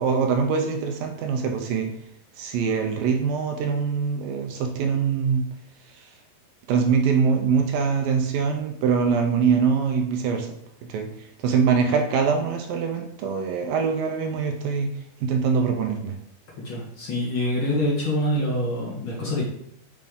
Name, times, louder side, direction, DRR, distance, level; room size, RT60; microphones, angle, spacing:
voice 1, 0.0-1.9 2.4-5.4 6.7-10.6 10.9-11.1 11.4-14.9 15.2-16.1, right 6 dB, 80° right, 4 dB, 2.2 m, -23 dB
voice 2, 16.6-19.4, left 1 dB, 65° left, -4 dB, 1.2 m, -25 dB
7.5 x 4.9 x 3.8 m, 0.70 s
omnidirectional pair, 4.7 m